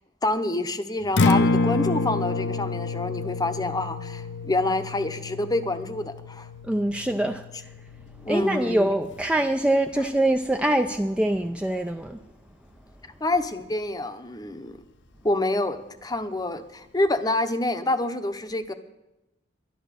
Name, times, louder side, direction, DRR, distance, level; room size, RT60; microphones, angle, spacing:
voice 1, 0.2-6.5 8.2-8.8 10.0-10.1 13.2-14.8 15.2-18.7, left 2 dB, 20° left, 0.7 m, -27 dB
Acoustic guitar, 1.0-9.2, left 3 dB, 65° left, 0.6 m, -28 dB
voice 2, 6.7-7.4 8.3-12.2, right 1 dB, 5° right, 0.4 m, -24 dB
11.0 x 11.0 x 6.7 m
head